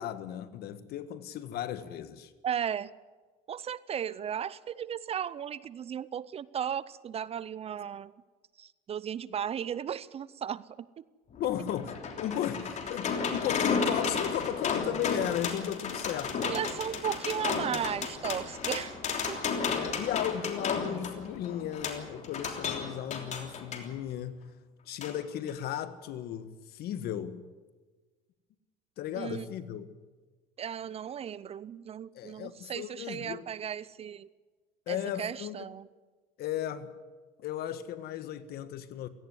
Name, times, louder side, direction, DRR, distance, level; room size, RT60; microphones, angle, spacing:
voice 1, 0.0-2.3 11.4-16.5 19.7-24.4 24.9-27.5 29.0-29.9 32.1-33.4 34.9-35.6 36.4-36.9 37.4-39.1, left 11 dB, 55° left, 1.5 m, -35 dB
voice 2, 2.4-2.9 3.5-8.1 8.6-11.0 16.4-18.9 19.3-19.4 29.2-29.5 30.6-34.3 34.9-35.9, right 8 dB, 30° right, 0.5 m, -35 dB
sound 1, 11.3-23.9 25.0-25.1 25.5-25.6, left 5 dB, 40° left, 3.3 m, -33 dB
17.0 x 16.5 x 9.5 m
supercardioid pair, 115°, 19 cm